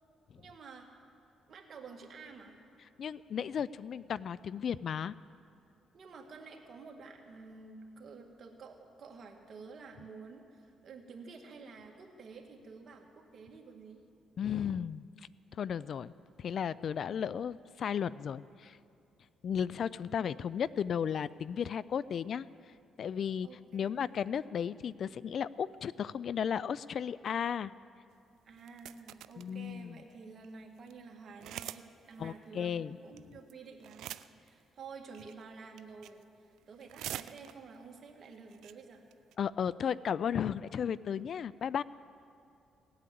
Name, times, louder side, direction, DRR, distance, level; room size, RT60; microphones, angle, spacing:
voice 1, 0.4-0.9 1.5-2.6 5.9-14.0 23.4-24.1 28.5-34.1 34.4-36.2 36.7-39.0, right 4 dB, 50° right, 2 dB, 2.0 m, -50 dB
voice 2, 3.0-5.1 14.4-15.1 15.5-16.1 16.4-18.8 19.4-22.5 23.0-23.5 23.7-27.7 29.4-30.0 32.2-33.0 39.4-41.8, left 8 dB, 60° left, 19 dB, 0.3 m, -34 dB
sound 1, 28.6-29.5 30.1-30.2 30.4-30.5 30.8-30.9 31.4-31.9 32.1-32.2 33.2-33.5 33.8-34.5 35.1-35.4 35.8-36.2 36.6-37.8 38.2-38.3 38.5-38.7 39.1-39.3, right 12 dB, 85° right, 0.4 m, -44 dB
18.0 x 8.7 x 8.4 m, 2.5 s
cardioid pair, 90°, 0 cm